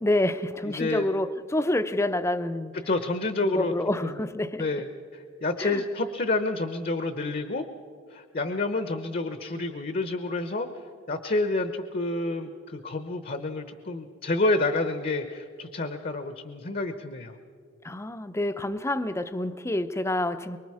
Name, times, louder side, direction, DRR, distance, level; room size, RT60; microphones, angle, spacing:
voice 1, 0.0-2.7 3.4-4.7 5.6-5.8 17.8-20.6, left 1 dB, 15° left, 0.5 m, -28 dB
voice 2, 2.8-3.7 4.0-4.2 4.6-4.8 5.1-7.6 8.1-10.7 11.1-17.3, left 2 dB, 45° left, 0.8 m, -29 dB
24.5 x 23.0 x 4.8 m
head